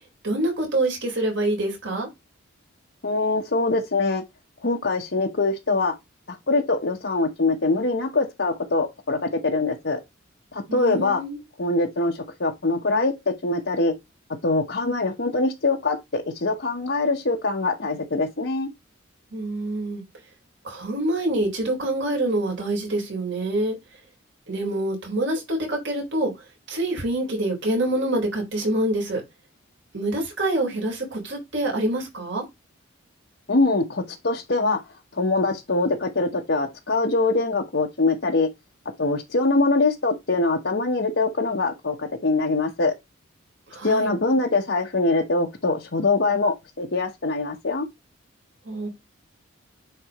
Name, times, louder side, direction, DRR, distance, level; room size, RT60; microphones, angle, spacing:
voice 1, 0.2-2.1 10.7-11.4 19.3-20.0 20.6-23.8 24.5-26.3 26.7-29.2 29.9-32.4 43.7-44.1 48.7-48.9, right 1 dB, 60° right, 4.0 m, -26 dB
voice 2, 3.0-4.2 4.6-6.0 6.3-10.0 10.5-11.2 11.6-13.9 14.4-18.7 33.5-34.8 35.1-38.5 39.0-42.9 43.8-47.8, left 3 dB, 60° left, 0.9 m, -23 dB
10.0 x 4.0 x 3.0 m
head